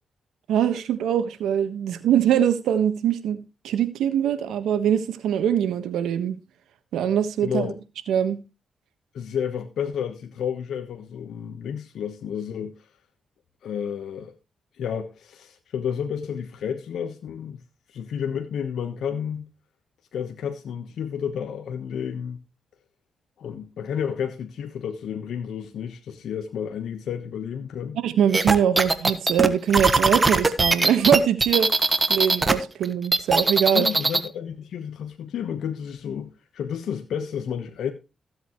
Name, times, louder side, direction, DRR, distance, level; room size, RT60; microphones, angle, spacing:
voice 1, 0.5-3.4 3.6-6.4 6.9-7.7 8.1-8.4 27.9-31.7 32.1-33.9, right 9 dB, 85° right, 1.3 m, -22 dB
voice 2, 7.4-7.8 9.1-12.7 13.6-14.3 14.8-17.6 17.9-19.5 20.1-22.4 23.4-28.0 33.7-37.9, left 8 dB, 80° left, 1.2 m, -31 dB
sound 1, 28.3-32.5 32.8-34.3, right 3 dB, 30° right, 1.4 m, -20 dB
15.5 x 8.1 x 3.1 m
cardioid pair, 60°, 0 cm